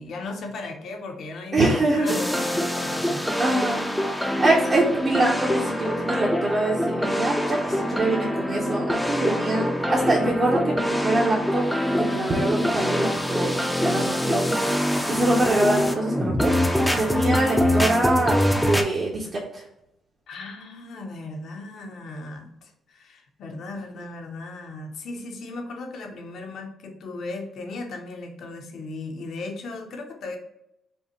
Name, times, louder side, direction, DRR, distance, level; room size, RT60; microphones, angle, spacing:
voice 1, 0.0-3.3 20.3-30.4, left 2 dB, 65° left, 3 dB, 0.8 m, -36 dB
voice 2, 1.5-2.2 3.4-11.6 12.0-16.5 17.0-19.3 19.5-19.6, right 2 dB, 40° right, -4 dB, 0.9 m, -24 dB
sound 1, 2.1-18.8, equal, 5° left, 0.5 m, -24 dB
5.3 x 2.2 x 2.9 m, 0.83 s
cardioid pair, 90°, 0 cm